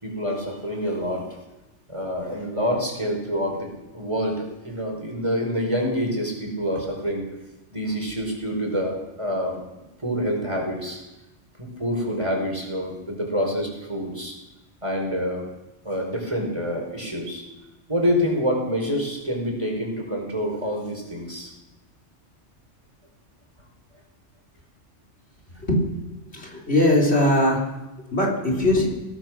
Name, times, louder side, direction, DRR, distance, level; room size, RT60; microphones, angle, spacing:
voice 1, 0.0-1.2 1.9-7.3 7.7-9.6 10.0-11.0 11.6-14.3 14.8-15.5 15.8-17.4 17.9-21.5, equal, 25° right, 1 dB, 4.9 m, -27 dB
voice 2, 25.6-25.9 26.3-27.6 28.1-28.9, left 1 dB, 55° left, 1 dB, 4.1 m, -20 dB
24.0 x 18.0 x 6.1 m, 1.0 s
omnidirectional pair, 1.3 m